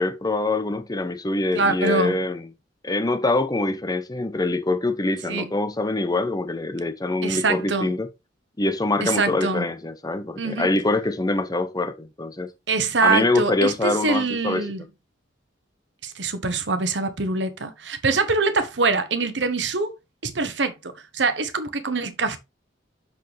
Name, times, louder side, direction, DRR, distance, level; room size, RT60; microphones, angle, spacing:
voice 1, 0.0-2.5 2.8-8.1 8.6-12.5 13.0-14.7, left 2 dB, 20° left, 0.8 m, -24 dB
voice 2, 1.5-2.1 5.3-5.5 7.2-7.9 9.0-9.6 10.4-10.7 12.7-14.8 16.0-19.9 20.2-22.4, right 4 dB, 70° right, 1.1 m, -24 dB
6.5 x 6.3 x 3.4 m
head